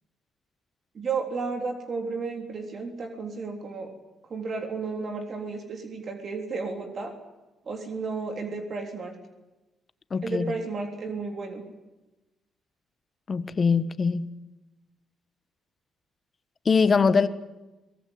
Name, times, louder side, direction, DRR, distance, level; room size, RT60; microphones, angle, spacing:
voice 1, 1.0-3.9 4.3-7.1 7.7-9.2 10.2-11.6, right 4 dB, 50° right, 4 dB, 3.5 m, -33 dB
voice 2, 10.1-10.5 13.3-14.3 16.6-17.3, left 5 dB, 40° left, 13 dB, 1.4 m, -22 dB
23.0 x 19.0 x 9.7 m, 1.1 s
cardioid pair, 90°, 0 cm